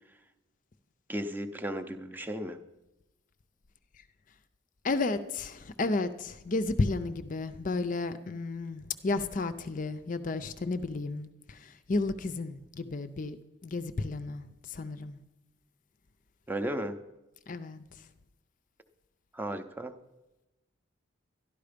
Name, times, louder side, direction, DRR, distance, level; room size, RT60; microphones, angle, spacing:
voice 1, 1.1-2.6 16.5-17.0 19.3-19.9, right 1 dB, 10° right, 0.6 m, -35 dB
voice 2, 4.8-13.4 13.6-15.2 17.5-17.8, left 3 dB, 40° left, 0.5 m, -32 dB
12.0 x 11.5 x 5.1 m
head